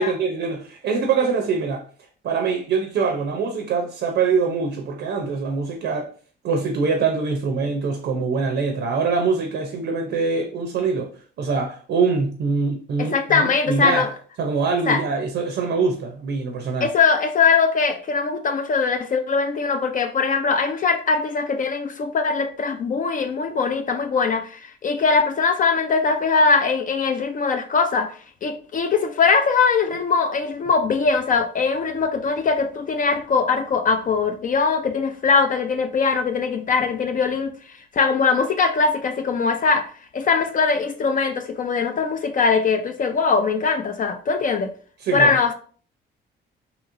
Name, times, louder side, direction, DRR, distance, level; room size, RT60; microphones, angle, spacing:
voice 1, 0.0-1.8 2.2-6.1 6.4-14.1 14.4-16.9 45.0-45.4, right 4 dB, 65° right, 0.6 m, -24 dB
voice 2, 13.0-14.1 14.9-15.0 16.8-28.1 28.4-37.5 37.9-39.9 40.1-44.7 45.1-45.5, left 5 dB, 45° left, 0.4 m, -21 dB
2.9 x 2.9 x 2.5 m
cardioid pair, 90°, 20 cm